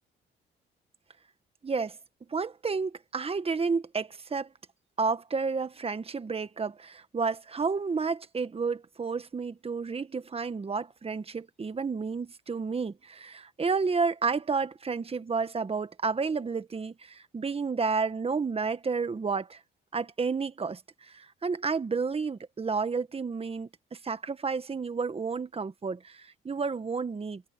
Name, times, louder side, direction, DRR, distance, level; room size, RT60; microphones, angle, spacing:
voice 1, 1.6-2.0 2.3-4.5 5.0-19.6 19.9-27.4, right 4 dB, 30° right, 1.5 m, -31 dB
cardioid pair, 90°, 20 cm